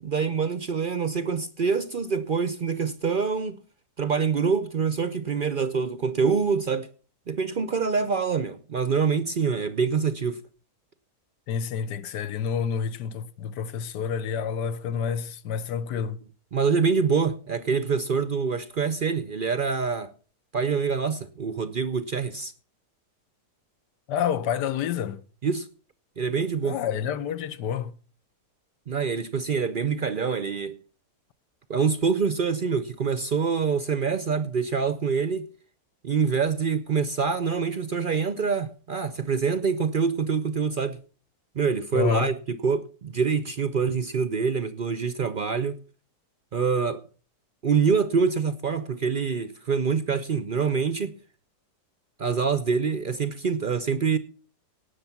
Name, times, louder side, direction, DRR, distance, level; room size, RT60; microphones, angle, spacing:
voice 1, 0.0-3.6 4.0-6.9 7.3-10.4 16.5-20.1 20.5-22.5 25.4-25.7 26.2-26.8 28.9-30.8 31.7-35.5 36.0-41.0 41.5-45.8 46.5-47.0 47.6-51.1 52.2-54.2, right 5 dB, 60° right, 0.5 m, -25 dB
voice 2, 11.5-16.2 24.1-25.2 26.6-27.9 41.9-42.3, left 7 dB, 85° left, 1.5 m, -28 dB
18.0 x 6.7 x 5.9 m
omnidirectional pair, 1.8 m